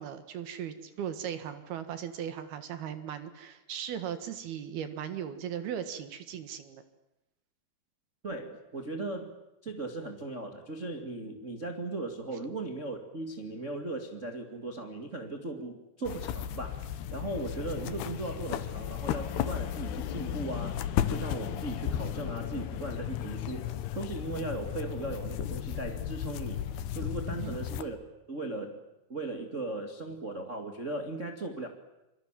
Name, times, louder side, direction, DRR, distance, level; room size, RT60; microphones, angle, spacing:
voice 1, 0.0-6.8 27.3-27.6, right 9 dB, 75° right, 10 dB, 3.6 m, -38 dB
voice 2, 8.2-9.3 9.6-20.8 21.1-26.7 26.9-28.0 28.3-28.8 29.1-31.7, right 2 dB, 25° right, 4 dB, 1.9 m, -37 dB
sound 1, 16.1-27.8, left 10 dB, 90° left, 3.3 m, -34 dB
27.5 x 26.0 x 7.6 m, 0.95 s
omnidirectional pair, 4.6 m